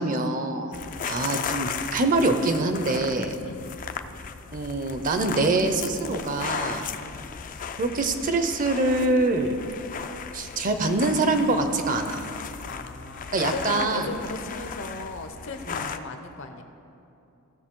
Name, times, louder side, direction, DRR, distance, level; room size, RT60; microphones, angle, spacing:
voice 1, 0.0-0.7 1.1-3.3 4.5-6.9 7.8-9.6 10.3-12.2 13.3-14.1 15.7-15.9, right 2 dB, 40° right, 7 dB, 0.6 m, -24 dB
voice 2, 0.7-1.1 3.4-3.7 6.9-7.3 12.7-16.6, left 3 dB, 60° left, 6 dB, 0.8 m, -37 dB
sound 1, 0.7-16.0, left 6 dB, 40° left, 0.4 m, -36 dB
15.5 x 6.7 x 3.7 m, 2.8 s
head